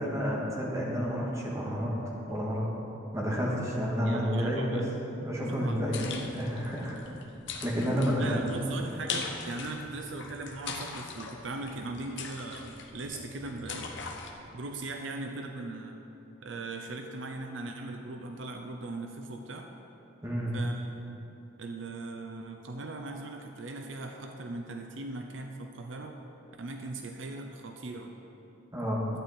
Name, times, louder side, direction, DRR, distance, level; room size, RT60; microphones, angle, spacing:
voice 1, 0.0-1.9 2.3-2.7 3.1-4.8 5.2-6.0 6.3-7.0 7.6-8.4 20.2-20.5 28.7-29.0, equal, 15° right, -4 dB, 1.8 m, -30 dB
voice 2, 4.0-5.1 5.4-5.9 8.2-13.9 14.5-16.0 16.4-19.7 20.5-21.2 21.6-26.2 26.6-28.1, right 2 dB, 70° right, 4 dB, 0.7 m, -39 dB
sound 1, 5.6-14.3, left 5 dB, 70° left, 1.0 m, -41 dB
11.5 x 9.0 x 4.3 m, 2.9 s
head